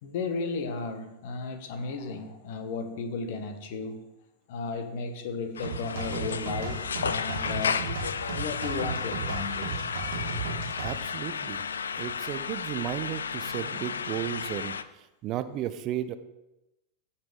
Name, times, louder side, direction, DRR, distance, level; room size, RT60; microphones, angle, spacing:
voice 1, 0.0-4.0 4.5-7.9 8.3-9.9 10.4-10.5, left 4 dB, 50° left, 8 dB, 1.4 m, -34 dB
sound 1, 5.6-14.8, left 6 dB, 70° left, 0.4 m, -33 dB
sound 2, 5.6-11.0, right 4 dB, 55° right, 1.7 m, -35 dB
voice 2, 10.8-11.7 12.0-16.2, right 12 dB, 35° right, 12 dB, 0.6 m, -34 dB
15.5 x 5.9 x 4.9 m, 0.95 s
figure-of-eight pair, 90°, 0 cm